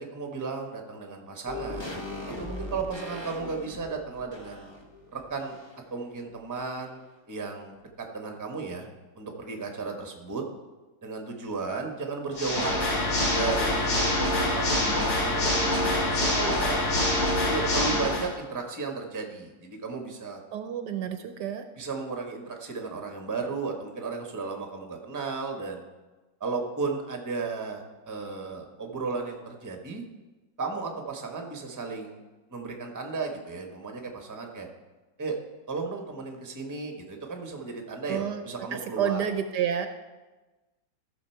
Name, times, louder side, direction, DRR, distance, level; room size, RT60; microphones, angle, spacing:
voice 1, 0.0-4.6 5.1-5.6 5.9-7.0 7.3-8.9 9.1-10.4 11.0-12.9 13.3-16.8 17.4-20.4 21.8-25.8 26.4-30.0 30.6-32.2 32.5-34.7 35.2-35.4 35.7-39.2, right 4 dB, 15° right, 3 dB, 0.9 m, -34 dB
sound 1, 1.5-6.0 6.2-6.3, left 2 dB, 25° left, 0.6 m, -40 dB
Water / Mechanisms, 12.3-18.3, left 1 dB, 85° left, 2.7 m, -25 dB
voice 2, 20.5-21.7 38.1-38.4 38.7-39.9, right 8 dB, 70° right, 8 dB, 1.2 m, -29 dB
15.0 x 6.3 x 4.5 m, 1.2 s
omnidirectional pair, 2.0 m